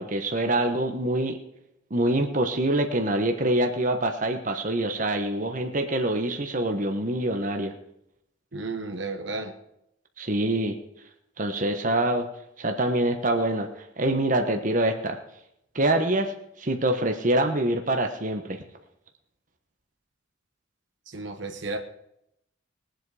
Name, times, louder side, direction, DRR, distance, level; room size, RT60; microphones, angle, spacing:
voice 1, 0.0-1.4 1.9-7.7 10.2-10.8 11.4-12.3 12.6-15.2 15.7-18.6, right 1 dB, 40° right, 5 dB, 1.2 m, -25 dB
voice 2, 8.5-9.5 21.1-21.8, right 3 dB, 60° right, 6 dB, 1.2 m, -33 dB
21.0 x 7.9 x 4.9 m, 0.79 s
head